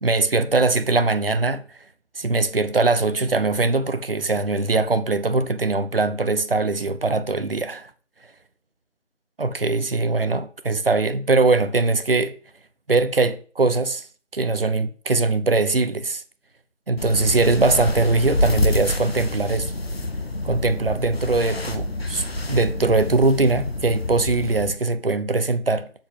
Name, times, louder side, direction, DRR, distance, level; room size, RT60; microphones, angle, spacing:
voice 1, 0.0-1.6 2.2-7.9 9.4-12.3 12.9-14.0 14.3-16.2 16.9-19.7 20.4-25.9, right 3 dB, 50° right, 0.7 m, -21 dB
sound 1, 17.0-24.7, left 1 dB, 55° left, 1.1 m, -27 dB
7.5 x 6.9 x 3.8 m
figure-of-eight pair, 165°, 36 cm